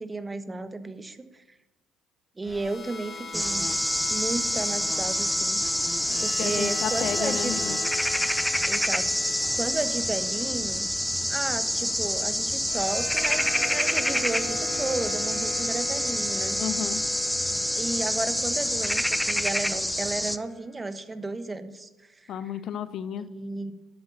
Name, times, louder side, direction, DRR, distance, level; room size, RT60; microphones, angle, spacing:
voice 1, 0.0-1.4 2.4-3.7 4.1-5.6 6.2-7.6 8.6-10.9 11.3-16.6 17.8-22.3 23.3-23.7, right 2 dB, 20° right, 11 dB, 1.2 m, -33 dB
sound 1, 2.4-20.6, left 3 dB, 35° left, 3.9 m, -40 dB
sound 2, 3.3-20.4, equal, 5° left, 0.7 m, -27 dB
voice 2, 6.4-7.8 16.6-17.0 22.3-23.3, left 9 dB, 60° left, 15 dB, 0.6 m, -32 dB
11.5 x 7.9 x 7.2 m, 1.0 s
hypercardioid pair, 60°, 0 cm